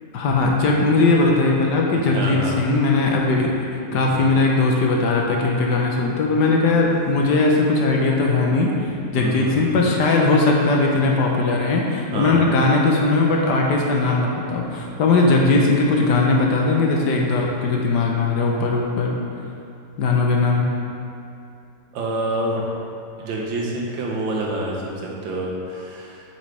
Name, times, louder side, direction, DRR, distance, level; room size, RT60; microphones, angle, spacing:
voice 1, 0.1-3.5 3.9-19.1 20.0-20.6, left 3 dB, 65° left, -1 dB, 1.3 m, -19 dB
voice 2, 1.9-2.5 3.9-4.3 9.1-9.8 12.1-12.4 21.9-22.7 23.2-26.2, right 1 dB, 85° right, -2 dB, 1.8 m, -27 dB
8.3 x 6.4 x 3.3 m, 2.5 s
omnidirectional pair, 2.1 m